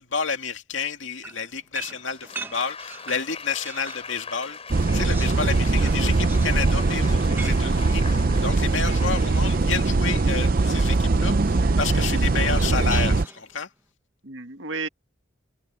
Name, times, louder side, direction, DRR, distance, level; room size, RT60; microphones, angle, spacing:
voice 1, 0.0-13.7, left 5 dB, 70° left, 2.4 m, -30 dB
sound 1, 1.2-4.1 4.5-9.5 10.6-11.2 12.5-13.6, right 3 dB, 10° right, 1.1 m, -42 dB
Applause, 1.8-10.7 11.5-11.9, left 5 dB, 30° left, 6.5 m, -42 dB
sound 2, 4.7-13.2, right 3 dB, 45° right, 0.6 m, -21 dB
voice 2, 7.0-7.4 9.4-9.5 11.6-12.2 12.8-12.9 14.2-14.9, right 3 dB, 65° right, 1.9 m, -36 dB
head